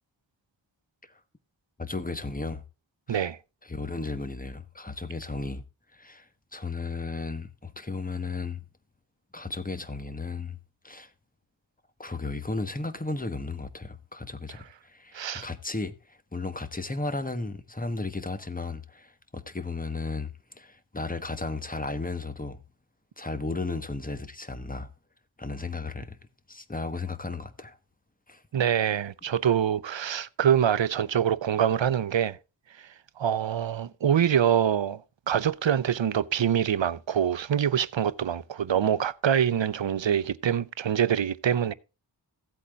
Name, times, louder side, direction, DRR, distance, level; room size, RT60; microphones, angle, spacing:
voice 1, 1.8-2.6 3.1-3.3 3.6-5.6 5.9-6.3 6.5-8.6 9.3-10.6 10.8-11.1 12.0-22.6 23.2-24.9 25.4-26.2 26.5-27.8 28.3-28.4, left 3 dB, 20° left, 1.2 m, -34 dB
voice 2, 15.1-15.5 28.5-32.4 33.2-35.0 35.3-41.7, right 9 dB, 85° right, 0.6 m, -25 dB
15.5 x 8.3 x 2.4 m
wide cardioid pair, 55°, 44 cm